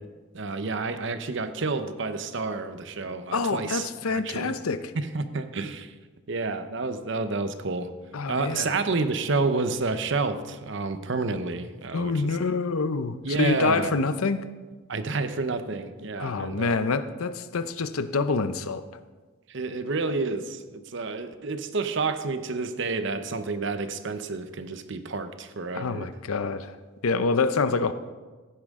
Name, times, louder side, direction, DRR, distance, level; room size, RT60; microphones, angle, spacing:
voice 1, 0.3-4.5 5.0-5.9 6.3-7.9 8.3-12.4 13.2-14.0 14.9-16.8 19.5-26.1 27.7-27.8, right 3 dB, 60° right, 10 dB, 0.8 m, -29 dB
voice 2, 3.3-4.9 8.1-8.7 11.9-14.4 16.2-18.8 25.7-26.8 27.0-27.9, left 4 dB, 90° left, 12 dB, 0.7 m, -26 dB
15.5 x 10.0 x 3.7 m, 1.3 s
head